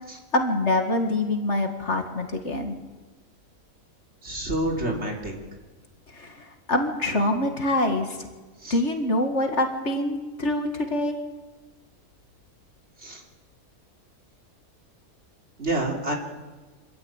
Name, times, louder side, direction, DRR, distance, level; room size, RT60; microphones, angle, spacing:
voice 1, 0.3-2.8 6.1-8.3 8.7-11.2, left 1 dB, 50° left, 4 dB, 2.2 m, -25 dB
voice 2, 4.2-5.3 8.6-8.8 13.0-13.2 15.6-16.1, right 1 dB, 45° right, 0 dB, 3.6 m, -28 dB
26.0 x 13.5 x 9.0 m, 1.3 s
omnidirectional pair, 1.5 m